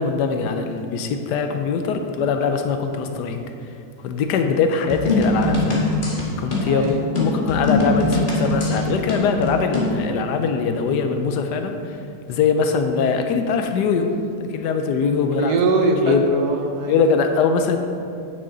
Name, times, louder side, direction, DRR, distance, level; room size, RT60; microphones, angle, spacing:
voice 1, 0.0-3.4 4.0-5.9 6.4-11.8 12.3-14.1 14.4-15.5 16.0-16.2 16.9-17.8, left 5 dB, 90° left, 6 dB, 1.2 m, -22 dB
sound 1, 4.9-10.0, left 2 dB, 30° left, 1.4 m, -22 dB
voice 2, 6.6-7.0 15.3-17.0, right 3 dB, 75° right, 3 dB, 1.3 m, -22 dB
9.3 x 6.2 x 3.9 m, 2.4 s
omnidirectional pair, 1.8 m